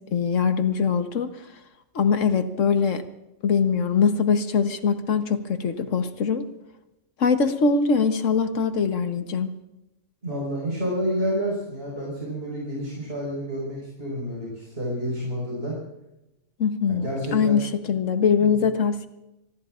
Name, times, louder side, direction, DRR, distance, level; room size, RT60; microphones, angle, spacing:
voice 1, 0.1-1.3 1.9-3.0 3.4-6.5 7.2-9.5 16.6-19.1, left 5 dB, 85° left, 8 dB, 1.4 m, -22 dB
voice 2, 10.2-15.8 16.9-17.6 18.4-18.6, equal, 55° right, -4 dB, 5.5 m, -29 dB
25.5 x 19.5 x 2.5 m, 0.93 s
omnidirectional pair, 1.3 m